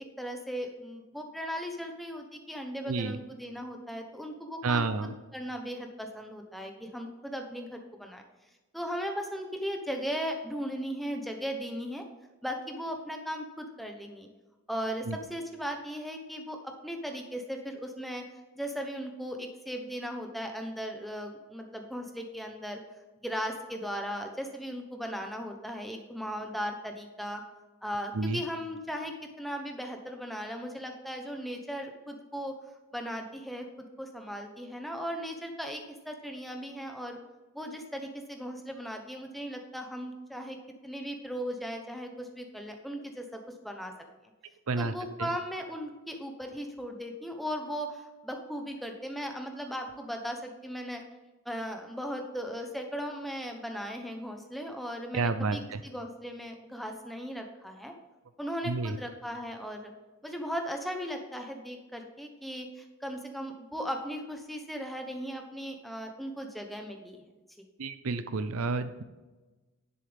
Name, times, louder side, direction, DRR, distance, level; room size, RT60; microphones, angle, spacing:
voice 1, 0.0-8.2 8.7-12.0 12.4-14.3 14.7-18.2 18.6-22.8 23.2-27.4 27.8-32.5 32.9-37.2 37.5-40.6 40.8-43.9 44.8-51.0 51.4-57.9 58.4-59.9 60.2-67.2, equal, ahead, 3 dB, 0.9 m, -37 dB
voice 2, 4.6-5.1 15.1-15.2 28.1-28.4 44.7-44.9 45.2-45.3 55.1-55.8 58.7-59.0 67.8-69.0, right 3 dB, 75° right, 11 dB, 0.6 m, -30 dB
10.5 x 7.6 x 3.5 m, 1.2 s
head